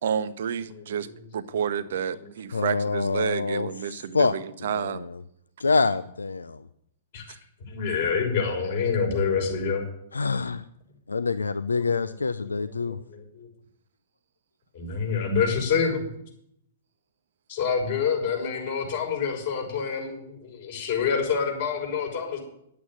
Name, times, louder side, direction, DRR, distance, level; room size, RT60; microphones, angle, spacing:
voice 1, 0.0-1.1 1.3-5.1, right 8 dB, 60° right, 14 dB, 0.8 m, -30 dB
voice 2, 2.5-4.3 4.6-5.2 5.6-6.6 10.1-10.6 11.1-13.0, left 4 dB, 80° left, 13 dB, 0.5 m, -26 dB
voice 3, 7.7-9.9 12.5-13.5 14.7-16.0 17.5-22.4, left 6 dB, 55° left, 1 dB, 6.1 m, -27 dB
11.0 x 8.6 x 9.3 m, 0.74 s
figure-of-eight pair, 115°, 0 cm